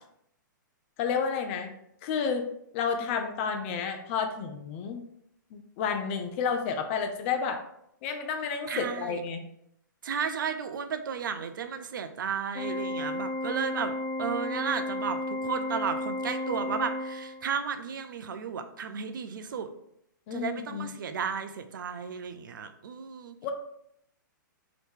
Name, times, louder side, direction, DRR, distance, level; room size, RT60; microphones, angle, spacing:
voice 1, 1.0-1.7 2.0-2.5 2.7-5.0 5.5-7.6 8.0-9.4 20.3-21.0 23.4-23.5, left 6 dB, 40° left, 6 dB, 0.5 m, -31 dB
voice 2, 8.7-9.2 10.0-19.7 20.3-23.4, right 7 dB, 75° right, 9 dB, 0.5 m, -34 dB
Organ, 12.5-17.6, left 2 dB, 15° left, 1.1 m, -33 dB
2.9 x 2.7 x 3.4 m, 0.73 s
hypercardioid pair, 135°, 11 cm